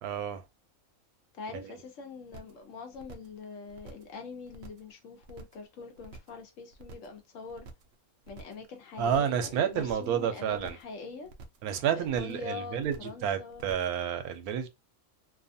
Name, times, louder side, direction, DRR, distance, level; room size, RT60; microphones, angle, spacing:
voice 1, 0.0-0.4 1.5-1.7 9.0-10.8 11.6-14.7, right 8 dB, 85° right, 1.1 m, -30 dB
voice 2, 1.3-7.7 8.3-11.3 12.0-13.7, left 4 dB, 65° left, 1.0 m, -44 dB
sound 1, 2.3-2.6 2.9-3.4 3.7-4.1 4.4-4.9 5.2-5.7 6.0-6.4 6.7-7.2 7.5-7.9 8.2-8.7 9.0-9.4 9.7-10.2 10.5-10.9 11.2-11.7 12.0-12.4 12.7-13.2 13.5-14.0, right 4 dB, 65° right, 0.7 m, -49 dB
2.7 x 2.3 x 2.5 m
omnidirectional pair, 1.5 m